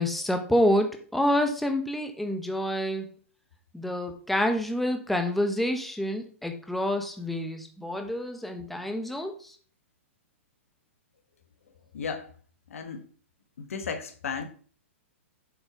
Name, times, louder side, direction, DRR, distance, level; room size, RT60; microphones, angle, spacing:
voice 1, 0.0-3.1 3.7-9.6, left 1 dB, ahead, 1.1 m, -28 dB
voice 2, 11.9-12.3 12.7-13.0 13.6-14.5, left 6 dB, 80° left, 1.6 m, -35 dB
7.8 x 4.8 x 5.1 m
hypercardioid pair, 130°, 7 cm